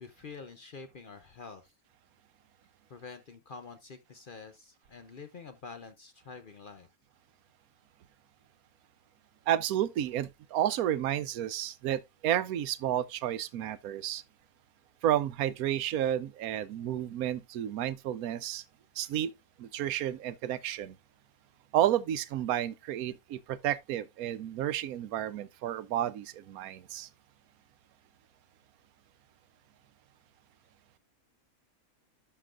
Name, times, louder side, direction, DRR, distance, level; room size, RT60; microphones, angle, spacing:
voice 1, 0.0-1.7 2.9-6.9, left 5 dB, 50° left, 0.7 m, -47 dB
voice 2, 9.5-14.2 15.0-18.6 18.9-19.3 19.6-21.0 21.7-27.1, right 11 dB, 85° right, 1.1 m, -31 dB
11.5 x 6.0 x 2.4 m
omnidirectional pair, 1.5 m